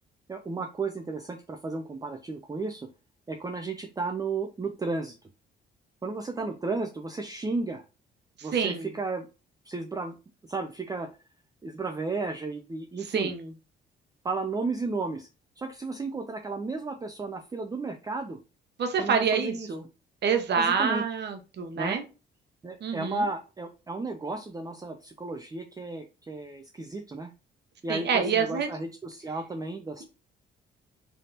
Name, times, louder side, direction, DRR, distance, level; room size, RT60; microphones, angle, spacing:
voice 1, 0.3-2.9 3.3-5.1 6.0-7.8 8.4-9.3 9.7-10.1 10.4-11.1 11.6-13.3 14.2-15.3 15.6-18.4 19.0-19.7 20.6-21.0 21.8-22.0 22.6-27.3 27.8-30.0, right 3 dB, 20° right, 5 dB, 0.5 m, -33 dB
voice 2, 8.5-8.9 13.1-13.5 18.8-19.8 20.2-22.0 22.8-23.3 27.9-28.7, right 6 dB, 60° right, 6 dB, 1.0 m, -27 dB
3.5 x 2.7 x 4.0 m, 0.31 s
cardioid pair, 90°, 20 cm